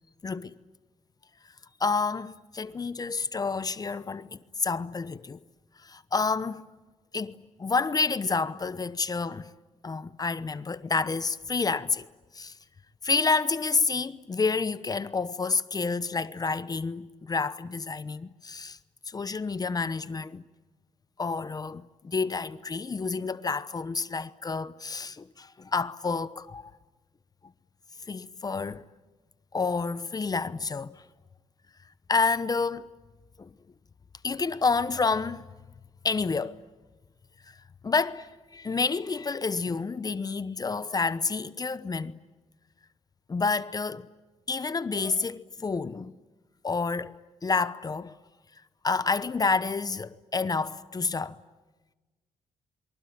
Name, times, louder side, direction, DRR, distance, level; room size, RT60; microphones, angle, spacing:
voice 1, 0.2-0.6 1.8-5.4 5.8-6.6 7.1-9.5 9.8-12.1 12.3-12.5 13.0-18.8 19.1-20.4 21.2-26.7 28.1-28.8 29.5-31.0 32.1-32.9 33.4-33.5 34.2-35.5 36.0-36.6 37.8-42.2 43.3-44.1 44.5-46.2 46.6-48.2 48.8-51.4, left 4 dB, 30° left, 0.9 m, -29 dB
28.5 x 23.5 x 8.8 m
cardioid pair, 80°, 13 cm